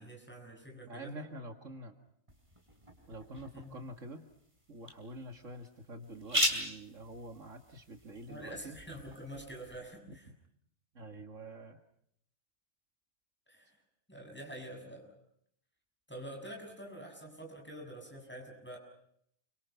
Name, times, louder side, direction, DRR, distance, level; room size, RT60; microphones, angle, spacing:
voice 1, 0.0-1.3 3.5-3.8 8.3-10.3 13.5-13.8 14.1-15.1 16.1-18.8, right 1 dB, 5° left, 2 dB, 7.1 m, -47 dB
voice 2, 0.8-2.0 3.1-4.3 4.7-8.8 10.1-10.2 10.9-11.8, right 1 dB, 65° right, 5 dB, 2.4 m, -46 dB
sound 1, 2.3-9.8, equal, 20° right, 4.7 m, -39 dB
30.0 x 25.0 x 5.8 m, 0.70 s
omnidirectional pair, 1.4 m